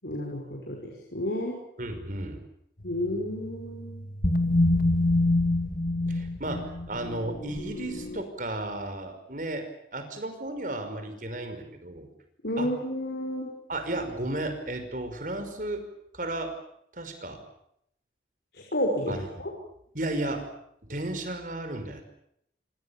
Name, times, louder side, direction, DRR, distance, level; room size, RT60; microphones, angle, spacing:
voice 1, 0.0-1.6 2.8-4.1 12.4-13.5 18.5-19.5, left 1 dB, 70° left, 1 dB, 6.1 m, -31 dB
voice 2, 1.8-2.4 6.1-12.1 12.6-12.7 13.7-15.8 16.1-16.5 16.9-17.4 19.1-19.2 19.9-20.5 20.9-22.0, right 1 dB, 50° right, 7 dB, 5.4 m, -34 dB
sound 1, 2.8-8.2, left 2 dB, 50° left, 2.4 m, -27 dB
28.5 x 24.0 x 7.3 m, 0.73 s
head